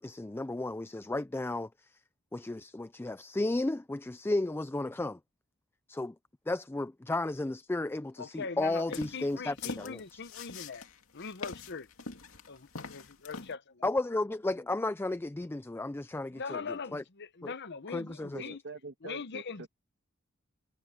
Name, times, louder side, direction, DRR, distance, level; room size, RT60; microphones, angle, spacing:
voice 1, 0.0-2.0 2.3-5.2 5.9-6.2 6.5-10.2 13.8-17.0 17.4-17.5 17.9-18.4, left 2 dB, 10° left, 0.3 m, -33 dB
voice 2, 8.2-10.8 11.1-11.9 12.5-13.8 16.3-18.6 19.0-19.7, left 5 dB, 55° left, 1.0 m, -41 dB
sound 1, 8.8-13.5, left 4 dB, 70° left, 2.6 m, -43 dB
voice 3, 18.3-19.7, right 3 dB, 60° right, 1.7 m, -45 dB
head